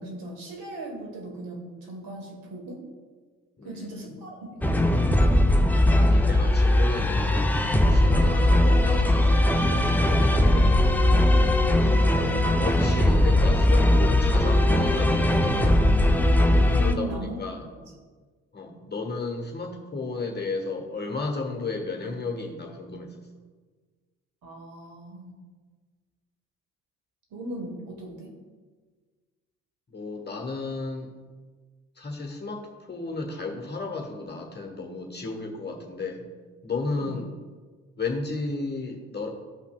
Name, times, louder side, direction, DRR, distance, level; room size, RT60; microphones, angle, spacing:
voice 1, 0.0-2.8 3.6-5.3 8.2-8.4 16.7-17.4 17.7-17.8 24.4-25.4 27.3-28.3 37.0-37.2, right 1 dB, 55° right, 0 dB, 2.0 m, -38 dB
voice 2, 3.6-4.1 6.0-9.3 9.7-10.8 12.2-15.8 16.8-17.6 18.5-23.1 29.9-31.1 32.0-36.2 36.6-37.3 38.0-39.3, left 3 dB, 25° left, 2 dB, 1.3 m, -34 dB
sound 1, 4.6-16.9, left 1 dB, 5° left, 0.5 m, -20 dB
13.5 x 5.7 x 2.3 m, 1.4 s
figure-of-eight pair, 50°, 42 cm